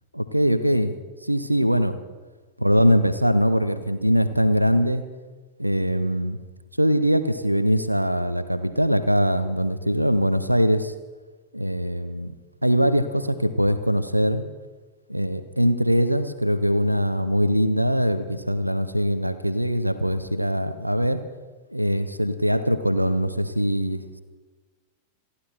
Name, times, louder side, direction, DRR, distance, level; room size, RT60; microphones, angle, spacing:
voice 1, 0.1-0.9 1.2-2.0 2.6-5.0 5.6-6.4 6.8-10.9 11.5-12.3 12.6-14.4 15.1-21.2 21.7-24.0, equal, 90° right, 12 dB, 0.9 m, -22 dB
27.5 x 11.5 x 4.5 m, 1.3 s
figure-of-eight pair, 90°, 0 cm